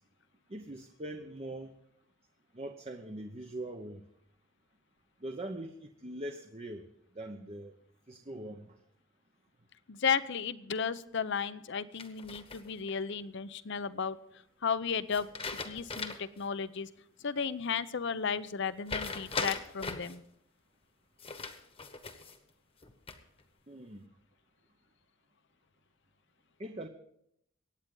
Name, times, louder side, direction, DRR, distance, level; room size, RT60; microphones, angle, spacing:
voice 1, 0.5-1.7 2.5-4.1 5.2-6.9 7.1-7.8 8.1-8.8 23.7-24.1 26.6-26.9, right 1 dB, 30° right, 4 dB, 0.9 m, -42 dB
voice 2, 9.9-14.2 14.6-15.3 15.6-16.9 17.2-20.2, left 6 dB, 60° left, 15 dB, 0.7 m, -34 dB
sound 1, 12.0-12.9 15.1-16.4 16.8-16.9 18.9-20.2 21.2-22.4 22.8-23.4, left 4 dB, 30° left, 1.3 m, -39 dB
23.5 x 9.4 x 3.9 m, 0.73 s
head